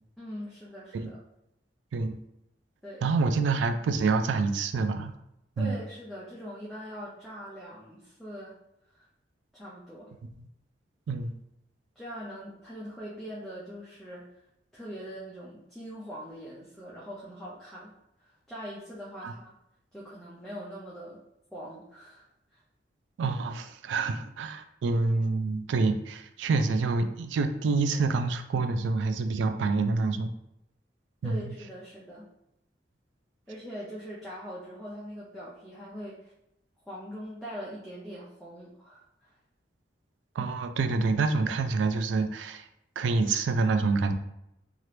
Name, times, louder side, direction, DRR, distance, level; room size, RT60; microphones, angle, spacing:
voice 1, 0.2-1.2 2.8-3.1 5.6-8.5 8.9-9.1 9.5-10.2 12.0-14.3 14.7-17.9 18.2-19.5 19.9-21.2 21.5-22.6 31.2-32.3 33.5-36.3 36.9-39.3, equal, ahead, -8 dB, 0.5 m, -42 dB
voice 2, 3.0-5.1 5.6-5.8 11.1-11.3 19.2-19.3 23.2-30.3 31.2-31.4 40.4-42.7 43.0-44.1, right 3 dB, 85° right, 7 dB, 0.3 m, -27 dB
2.8 x 2.4 x 3.2 m, 0.83 s
head